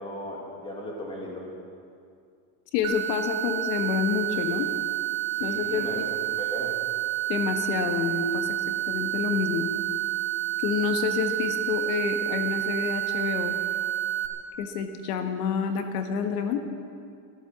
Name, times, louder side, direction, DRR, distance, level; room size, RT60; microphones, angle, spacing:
voice 1, 0.0-1.4 5.3-6.8, equal, 10° left, -1 dB, 2.3 m, -36 dB
voice 2, 2.7-4.7 5.4-6.0 7.3-8.5 8.9-9.7 10.6-13.6 14.6-16.6, left 6 dB, 85° left, 6 dB, 1.5 m, -28 dB
sound 1, 2.8-14.3, right 15 dB, 50° right, 1.7 m, -29 dB
13.5 x 13.0 x 7.4 m, 2.3 s
cardioid pair, 165°, 45 cm